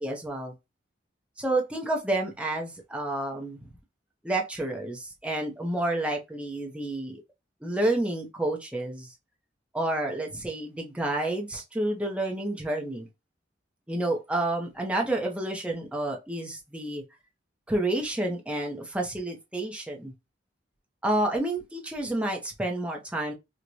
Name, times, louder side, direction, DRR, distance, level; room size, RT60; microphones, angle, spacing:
voice 1, 0.0-0.5 1.4-3.7 4.2-7.2 7.6-9.1 9.7-13.1 13.9-17.0 17.7-20.1 21.0-23.3, right 1 dB, 5° right, 0.7 m, -29 dB
4.5 x 2.2 x 2.6 m
head